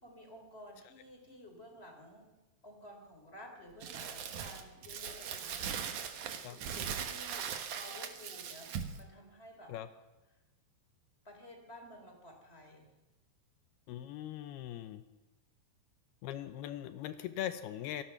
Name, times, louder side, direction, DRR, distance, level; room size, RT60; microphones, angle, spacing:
voice 1, 0.0-2.4 2.6-5.8 6.4-9.7 11.2-12.9, left 1 dB, 15° left, 3 dB, 3.0 m, -53 dB
Crumpling crinkling, 3.8-9.0, right 7 dB, 70° right, 1.9 m, -40 dB
voice 2, 13.9-15.0 16.2-18.0, left 11 dB, 85° left, 10 dB, 2.2 m, -40 dB
26.0 x 18.5 x 5.9 m, 1.0 s
omnidirectional pair, 5.8 m